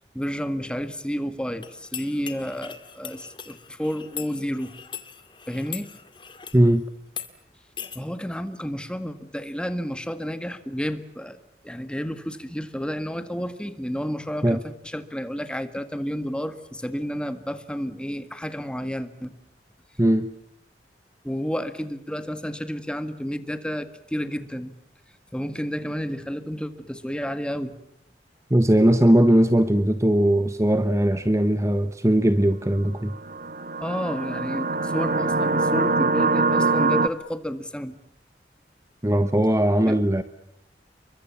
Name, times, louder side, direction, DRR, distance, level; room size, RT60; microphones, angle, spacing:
voice 1, 0.1-4.7 5.5-5.9 7.9-11.4 11.6-19.3 21.2-24.7 25.3-27.7 33.8-38.0 39.9-40.0, equal, 5° left, 10 dB, 1.8 m, -31 dB
sound 1, 1.6-6.6 7.1-7.3 7.8-8.0, left 8 dB, 25° left, 2.2 m, -40 dB
voice 2, 6.5-6.8 14.4-14.6 20.0-20.3 28.5-33.1 39.0-40.2, right 1 dB, 15° right, 11 dB, 1.0 m, -19 dB
sound 2, 33.1-37.1, right 3 dB, 50° right, 1.3 m, -23 dB
29.5 x 24.0 x 7.2 m, 0.78 s
head